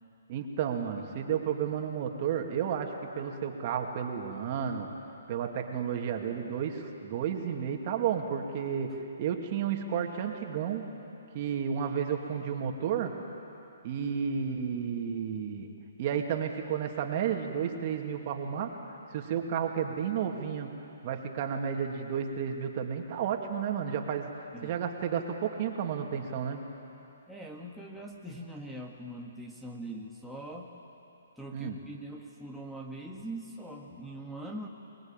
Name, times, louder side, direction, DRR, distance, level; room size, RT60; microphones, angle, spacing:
voice 1, 0.3-4.9 5.3-10.8 11.3-13.2 13.8-15.7 16.0-18.8 19.1-20.8 21.0-26.7 31.5-31.8, right 8 dB, 40° right, 3 dB, 2.5 m, -32 dB
voice 2, 27.3-30.7 31.4-34.7, right 1 dB, ahead, -1 dB, 1.9 m, -42 dB
24.5 x 21.5 x 9.1 m, 2.9 s
hypercardioid pair, 140°, 0 cm